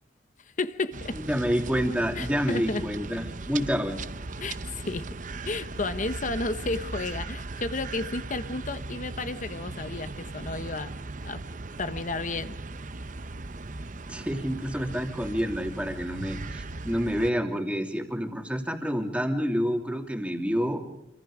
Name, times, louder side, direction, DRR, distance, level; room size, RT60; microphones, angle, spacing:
voice 1, 0.4-1.2 2.2-2.8 4.4-5.0 5.5-10.9 11.2-11.4 11.8-12.6, left 3 dB, 40° left, 11 dB, 1.0 m, -32 dB
sound 1, 0.9-17.3, right 3 dB, 45° right, 0.8 m, -38 dB
voice 2, 1.2-4.0 14.1-20.8, equal, 5° right, 4 dB, 2.9 m, -28 dB
27.0 x 26.0 x 5.0 m, 0.85 s
head